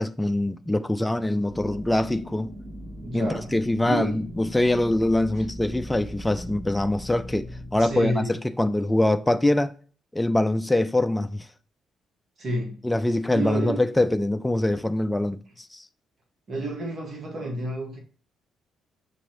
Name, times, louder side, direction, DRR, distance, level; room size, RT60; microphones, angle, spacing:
voice 1, 0.0-2.5 3.1-9.7 10.1-11.5 12.8-15.9, left 1 dB, 10° left, 0.3 m, -24 dB
sound 1, 1.5-8.1, equal, 25° right, 1.6 m, -39 dB
voice 2, 3.0-3.5 3.8-4.3 5.4-5.5 7.8-8.3 12.4-12.8 13.3-13.8 16.5-18.0, right 1 dB, 55° right, 1.6 m, -30 dB
6.1 x 3.0 x 2.9 m
supercardioid pair, 70°, 0 cm